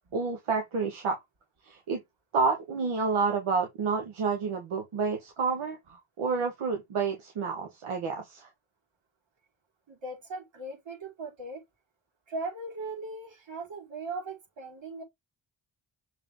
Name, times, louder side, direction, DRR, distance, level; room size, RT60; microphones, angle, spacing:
voice 1, 0.1-1.2 1.6-2.0 2.3-8.5, right 5 dB, 90° right, 1.5 m, -29 dB
voice 2, 9.9-11.6 12.3-15.0, right 2 dB, 65° right, 4.6 m, -38 dB
6.5 x 3.9 x 3.6 m
cardioid pair, 90°, 48 cm